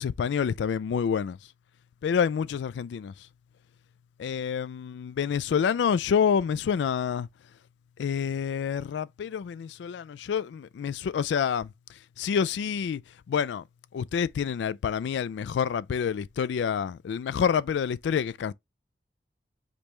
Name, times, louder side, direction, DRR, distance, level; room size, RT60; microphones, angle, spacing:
voice 1, 0.0-1.4 2.0-3.1 4.2-7.3 8.0-11.7 12.2-13.0 13.3-13.6 13.9-18.5, left 7 dB, 85° left, 0.3 m, -27 dB
5.1 x 3.2 x 2.9 m
head